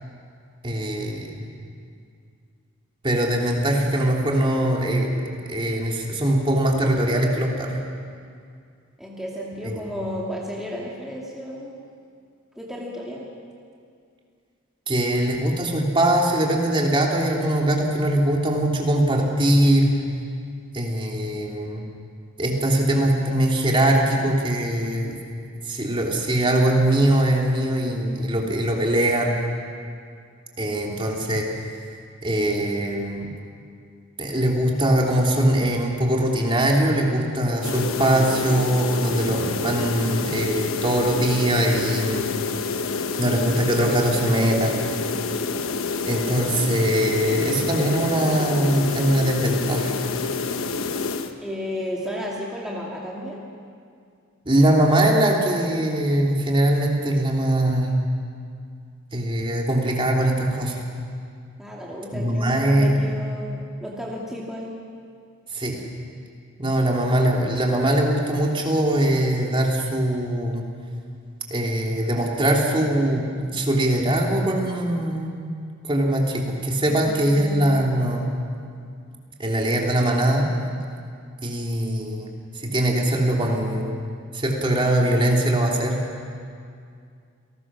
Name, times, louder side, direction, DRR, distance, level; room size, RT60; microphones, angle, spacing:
voice 1, 0.6-1.5 3.0-5.1 5.5-7.8 9.6-9.9 14.9-20.0 20.7-21.8 22.4-25.2 25.7-29.4 30.6-31.5 32.2-33.3 34.2-42.3 43.2-44.8 46.0-50.0 54.4-57.9 59.1-60.8 62.1-63.0 65.5-65.8 66.6-70.6 71.5-75.3 75.8-78.2 79.4-80.5 81.4-83.9 84.3-86.0, right 1 dB, 25° right, -1 dB, 3.1 m, -22 dB
voice 2, 9.0-11.8 12.6-13.3 51.4-53.5 61.6-64.8 76.9-77.8, equal, ahead, -4 dB, 2.2 m, -33 dB
sound 1, 37.6-51.3, left 4 dB, 85° left, 1.2 m, -28 dB
29.0 x 19.5 x 6.3 m, 2.3 s
head